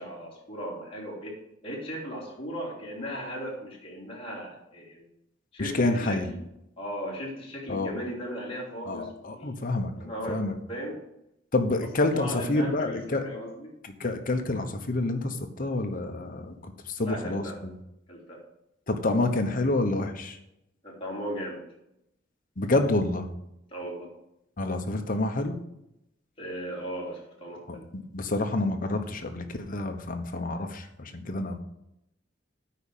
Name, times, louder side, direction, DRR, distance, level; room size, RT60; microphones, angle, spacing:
voice 1, 0.0-1.4 1.6-5.1 5.5-6.4 6.8-11.0 12.1-13.7 17.0-17.6 18.1-18.4 20.8-21.6 23.7-24.1 26.4-27.8, equal, 30° left, -4 dB, 3.4 m, -37 dB
voice 2, 5.6-6.3 7.7-7.9 8.9-9.9 10.3-10.5 11.5-13.2 13.8-17.7 18.9-20.4 22.6-23.2 24.6-25.6 27.7-31.6, left 2 dB, 45° left, 6 dB, 1.0 m, -28 dB
8.8 x 5.1 x 7.3 m, 0.83 s
head